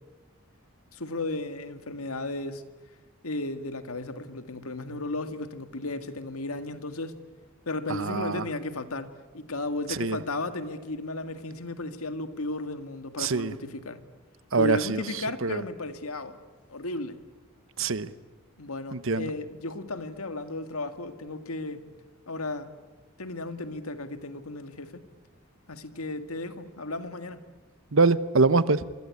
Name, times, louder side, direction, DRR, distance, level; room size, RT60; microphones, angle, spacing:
voice 1, 0.9-2.6 3.2-7.2 7.7-14.0 14.5-16.4 16.7-17.2 18.6-21.9 22.3-22.7 23.2-25.0 25.7-27.4, left 2 dB, 90° left, 1.9 m, -34 dB
voice 2, 7.9-8.4 10.0-10.2 13.2-13.5 14.5-15.0 15.4-15.6 17.8-18.1 18.9-19.3 27.9-28.8, right 4 dB, 65° right, 0.9 m, -24 dB
27.0 x 24.5 x 8.5 m
head